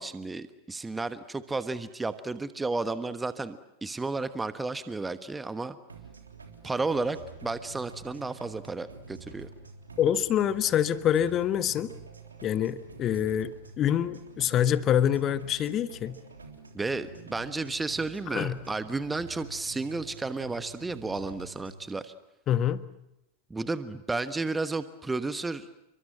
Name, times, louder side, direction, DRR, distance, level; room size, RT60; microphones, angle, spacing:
voice 1, 0.0-5.8 6.6-9.5 16.7-22.1 23.5-25.7, right 3 dB, 10° right, 12 dB, 1.2 m, -32 dB
sound 1, 5.9-21.9, right 4 dB, 75° right, 3.5 m, -47 dB
voice 2, 10.0-11.9 12.4-16.2 18.3-18.6 22.5-22.8, left 10 dB, 30° left, 14 dB, 1.4 m, -26 dB
30.0 x 24.5 x 7.7 m, 0.85 s
figure-of-eight pair, 90°, 0 cm